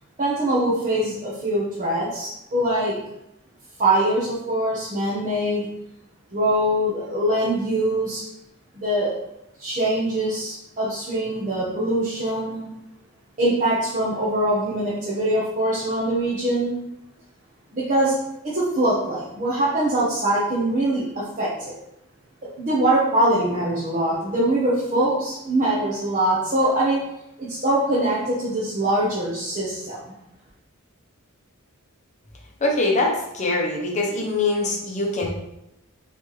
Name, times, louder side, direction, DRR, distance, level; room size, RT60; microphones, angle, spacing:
voice 1, 0.2-2.9 3.8-5.7 6.3-8.2 8.7-9.1 9.6-12.7 13.4-16.7 17.7-18.2 18.4-21.7 22.6-27.0 27.4-30.0, right 1 dB, 35° right, -8 dB, 0.9 m, -23 dB
voice 2, 32.6-35.3, left 2 dB, 35° left, 0 dB, 0.8 m, -23 dB
4.1 x 3.3 x 3.2 m, 0.84 s
head